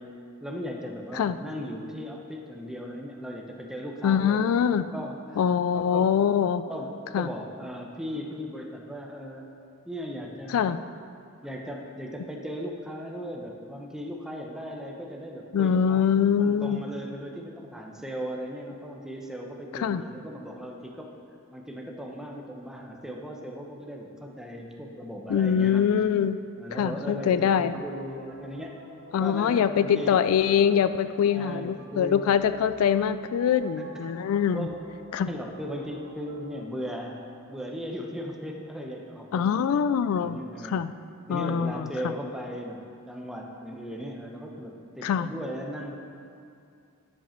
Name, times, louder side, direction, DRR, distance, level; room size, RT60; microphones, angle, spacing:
voice 1, 0.0-5.4 5.7-6.1 6.6-9.5 9.8-10.7 11.4-16.0 16.4-21.1 21.5-25.9 26.6-28.8 29.2-30.2 31.3-32.4 33.8-33.9 34.5-34.8 35.2-37.2 37.5-39.8 40.2-40.8 41.3-46.0, equal, 5° right, 0 dB, 0.8 m, -37 dB
voice 2, 4.0-4.9 5.4-6.6 7.1-7.3 10.5-10.8 15.5-16.8 19.7-20.0 25.3-26.4 26.7-27.7 29.1-34.7 35.1-35.3 39.3-40.4 40.7-40.9 41.3-41.9 45.0-45.3, left 8 dB, 75° left, 12 dB, 0.3 m, -23 dB
sound 1, 27.3-36.6, right 1 dB, 75° right, 1.6 m, -50 dB
10.5 x 7.4 x 4.4 m, 2.5 s
head